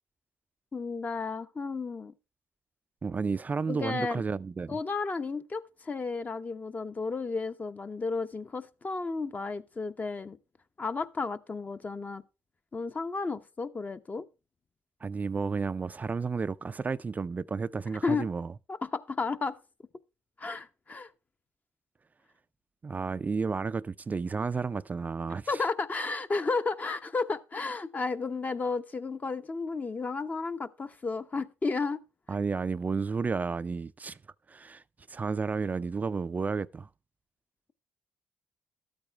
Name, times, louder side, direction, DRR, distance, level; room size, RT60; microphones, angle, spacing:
voice 1, 0.7-2.1 3.7-4.2 4.7-10.4 10.8-12.2 12.7-14.3 18.0-18.3 18.7-19.6 20.4-21.1 25.5-32.0, left 4 dB, 30° left, 1.0 m, -33 dB
voice 2, 3.0-4.8 15.0-18.5 22.8-25.6 32.3-34.2 34.5-34.8 35.1-36.9, right 4 dB, 30° right, 0.4 m, -32 dB
12.5 x 8.7 x 3.3 m
cardioid pair, 80°, 5 cm